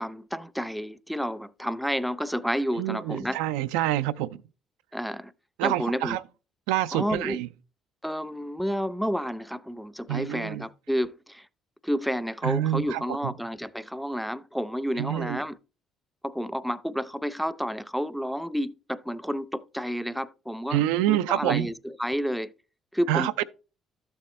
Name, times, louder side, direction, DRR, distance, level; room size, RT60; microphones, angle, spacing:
voice 1, 0.0-3.4 4.9-5.3 5.6-6.2 6.9-7.4 8.0-11.5 11.8-15.6 16.2-20.8 21.1-22.5 22.9-23.4, equal, ahead, 0.6 m, -30 dB
voice 2, 2.8-4.4 5.6-6.2 6.7-7.5 10.1-10.6 12.4-13.3 15.0-15.4 20.7-21.7 23.1-23.4, right 13 dB, 80° right, 0.4 m, -27 dB
13.0 x 7.0 x 3.2 m
hypercardioid pair, 55°, 0 cm